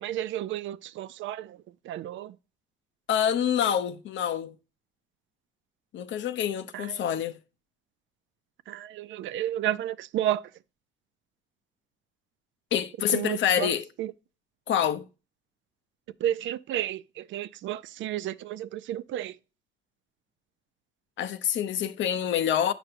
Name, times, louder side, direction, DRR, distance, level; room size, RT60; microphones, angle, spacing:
voice 1, 0.0-1.6 1.9-2.3 6.7-6.8 8.7-10.4 13.1-13.7 14.0-14.1 16.2-19.3, right 12 dB, 75° right, 0.4 m, -31 dB
voice 2, 3.1-4.5 5.9-7.4 12.7-13.9 14.7-15.1 21.2-22.7, left 9 dB, 70° left, 0.7 m, -26 dB
7.7 x 6.0 x 2.5 m
cardioid pair, 90°, 20 cm